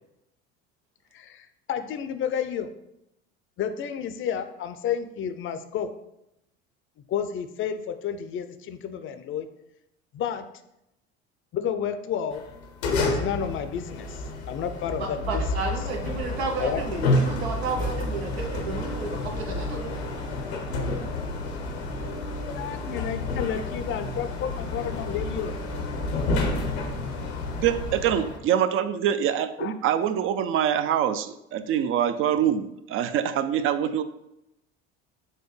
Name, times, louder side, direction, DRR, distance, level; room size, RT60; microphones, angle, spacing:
voice 1, 1.1-2.7 3.6-5.9 7.1-9.5 10.1-10.4 11.5-12.4 13.0-15.4 16.6-16.8 22.5-25.6 29.6-29.7, left 8 dB, 40° left, 9 dB, 0.5 m, -31 dB
sound 1, 12.3-28.4, left 2 dB, 85° left, 0.8 m, -30 dB
voice 2, 15.0-20.0, right 3 dB, 90° right, 2 dB, 0.8 m, -32 dB
voice 3, 27.6-34.0, right 9 dB, 45° right, 12 dB, 0.4 m, -25 dB
6.4 x 2.2 x 3.2 m, 0.84 s
hypercardioid pair, 75°, 31 cm